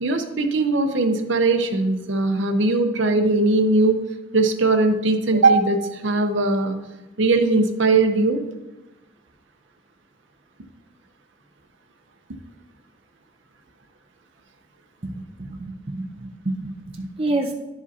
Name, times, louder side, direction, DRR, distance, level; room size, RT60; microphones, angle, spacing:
voice 1, 0.0-4.0 4.3-6.7 7.2-8.4, right 3 dB, 60° right, 6 dB, 0.7 m, -20 dB
voice 2, 15.0-15.6 15.9-17.5, right 2 dB, 30° right, 2 dB, 0.5 m, -28 dB
11.0 x 5.0 x 2.7 m, 1.1 s
head